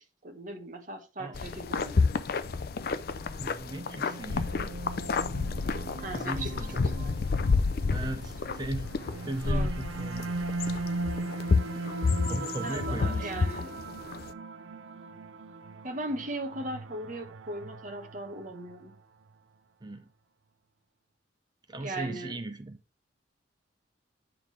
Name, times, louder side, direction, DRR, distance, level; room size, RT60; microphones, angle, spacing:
voice 1, 0.0-2.1 6.0-7.1 8.0-8.2 9.4-9.7 12.6-13.8 15.8-19.0 21.8-22.4, right 1 dB, 40° right, 1.2 m, -38 dB
sound 1, 1.3-14.3, left 4 dB, 50° left, 0.4 m, -30 dB
voice 2, 3.1-4.7 6.1-6.9 7.9-8.9 9.3-10.3 12.3-13.5 19.8-20.1 21.7-22.8, right 2 dB, 20° right, 0.6 m, -38 dB
sound 2, 3.7-19.0, right 2 dB, 90° right, 0.5 m, -39 dB
9.3 x 3.8 x 4.8 m
head